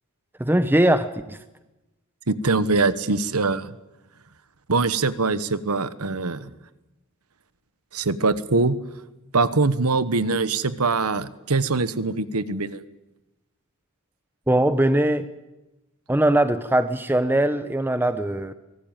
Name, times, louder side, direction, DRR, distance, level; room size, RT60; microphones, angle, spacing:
voice 1, 0.4-1.4 14.5-15.2 16.1-18.5, right 1 dB, 10° right, 11 dB, 0.8 m, -21 dB
voice 2, 2.3-3.7 4.7-6.5 7.9-8.8 9.3-12.8, right 3 dB, 85° right, 15 dB, 1.3 m, -23 dB
24.5 x 19.0 x 9.1 m, 1.0 s
head